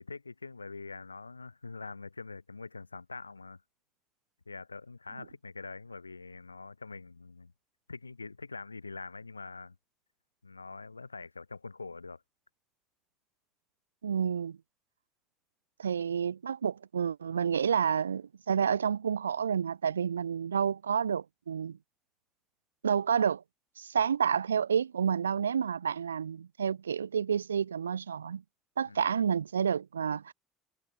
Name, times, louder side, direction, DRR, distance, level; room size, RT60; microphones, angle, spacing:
voice 1, 0.0-3.6 4.5-7.5 7.9-9.8 10.4-12.2 28.9-29.1, left 4 dB, 85° left, 2.0 m, -44 dB
voice 2, 14.0-14.6 15.8-21.8 22.8-23.4 23.8-28.4 28.8-30.3, right 7 dB, 80° right, 0.3 m, -29 dB
figure-of-eight pair, 60°, 0 cm